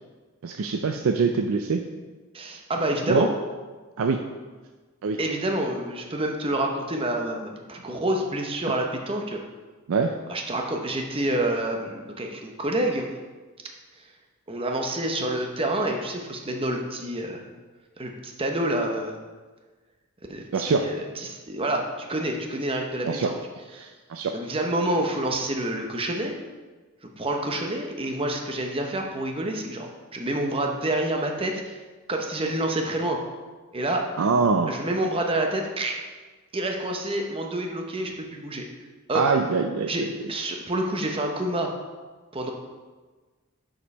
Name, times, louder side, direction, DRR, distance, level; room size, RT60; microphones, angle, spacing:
voice 1, 0.4-1.8 3.1-3.3 4.0-4.2 5.0-5.2 9.9-10.1 20.5-20.9 23.0-23.3 23.8-24.3 34.2-34.7 39.1-39.9, right 4 dB, 80° right, 5 dB, 0.5 m, -24 dB
voice 2, 2.3-3.3 5.2-9.4 10.3-13.1 14.5-17.5 18.0-19.2 20.3-23.4 23.8-23.9 24.3-26.4 27.2-31.8 32.1-33.2 33.7-34.1 34.7-36.0 36.5-38.6 39.1-39.2 39.9-41.7 42.3-42.5, right 1 dB, 25° right, 2 dB, 0.8 m, -28 dB
6.9 x 5.3 x 5.3 m, 1.3 s
head